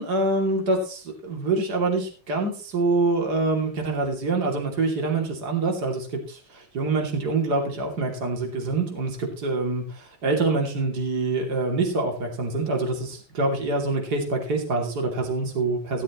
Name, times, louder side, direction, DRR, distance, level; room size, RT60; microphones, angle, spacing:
voice 1, 0.0-16.0, right 3 dB, 45° right, 1 dB, 3.3 m, -25 dB
17.0 x 13.0 x 3.1 m, 0.38 s
omnidirectional pair, 2.4 m